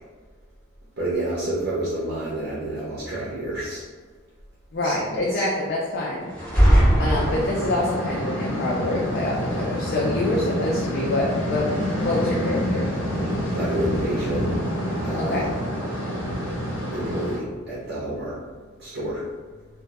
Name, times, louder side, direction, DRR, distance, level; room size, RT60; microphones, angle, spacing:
voice 1, 1.0-3.8 4.8-5.4 13.5-14.5 15.0-15.5 16.9-18.3 18.8-19.2, right 1 dB, 55° right, -9 dB, 0.6 m, -29 dB
voice 2, 4.7-6.3 7.0-11.8 12.0-12.9 15.1-15.5, left 2 dB, 50° left, -4 dB, 0.3 m, -26 dB
sound 1, 6.3-8.0, equal, 10° left, 0.7 m, -19 dB
sound 2, 7.1-17.4, equal, 70° left, 0.7 m, -27 dB
2.1 x 2.1 x 2.8 m, 1.4 s
head